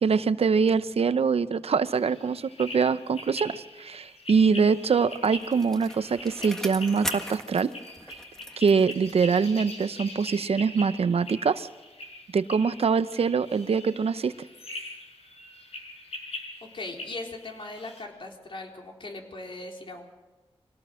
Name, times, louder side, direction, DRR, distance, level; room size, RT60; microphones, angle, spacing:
voice 1, 0.0-7.7 8.6-11.7 12.3-14.3, right 5 dB, 75° right, 13 dB, 0.8 m, -24 dB
sound 1, 1.9-18.0, left 2 dB, 80° left, 5.8 m, -42 dB
Bicycle, 4.7-9.6 10.0-10.1, equal, 5° left, 1.7 m, -40 dB
voice 2, 16.7-20.0, left 2 dB, 55° left, 1 dB, 3.9 m, -39 dB
24.5 x 18.0 x 6.4 m, 1.1 s
wide cardioid pair, 85°, 10 cm